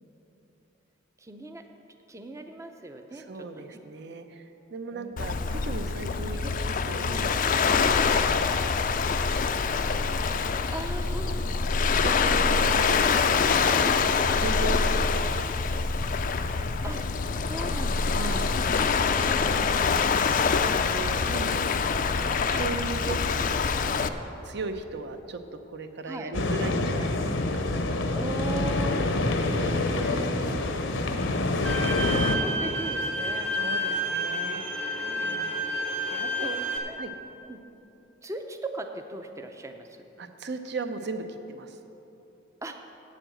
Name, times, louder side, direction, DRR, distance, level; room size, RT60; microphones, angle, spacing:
voice 1, 1.2-1.6 2.1-3.8 4.9-5.2 10.7-11.8 12.2-12.6 16.8-17.0 17.5-18.5 19.2-19.8 26.1-26.3 28.1-30.9 31.6-33.5 35.0-35.6 36.4-36.5 36.8-37.0 37.5-37.6 38.2-40.1 42.6-42.9, right 2 dB, 15° right, 5 dB, 0.5 m, -39 dB
voice 2, 3.1-8.6 9.2-10.0 12.0-13.9 14.3-15.9 16.2-16.3 16.6-16.7 17.0-17.1 18.1-18.6 19.8-21.8 22.2-24.1 24.4-28.0 33.5-35.8 36.1-36.7 37.0-37.1 40.2-41.8, right 3 dB, 60° right, 7 dB, 0.7 m, -38 dB
Waves surf, 5.2-24.1, left 5 dB, 45° left, 0.4 m, -25 dB
sound 1, 26.3-32.4, left 2 dB, 70° left, 0.8 m, -26 dB
Bowed string instrument, 31.7-36.8, equal, 85° right, 1.2 m, -30 dB
8.8 x 7.5 x 7.7 m, 2.9 s
head